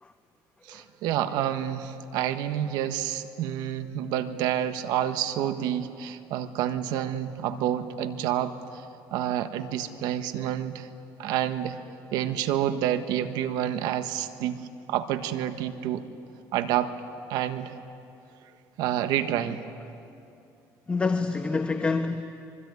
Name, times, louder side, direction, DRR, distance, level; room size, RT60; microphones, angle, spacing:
voice 1, 0.7-8.8 9.1-10.9 11.2-11.8 12.1-16.1 16.5-16.9 17.3-17.7 18.8-19.6, right 11 dB, 75° right, 9 dB, 1.5 m, -28 dB
voice 2, 20.9-22.2, left 4 dB, 15° left, 6 dB, 1.2 m, -27 dB
25.5 x 24.0 x 9.5 m, 2.6 s
cardioid pair, 115°, 7 cm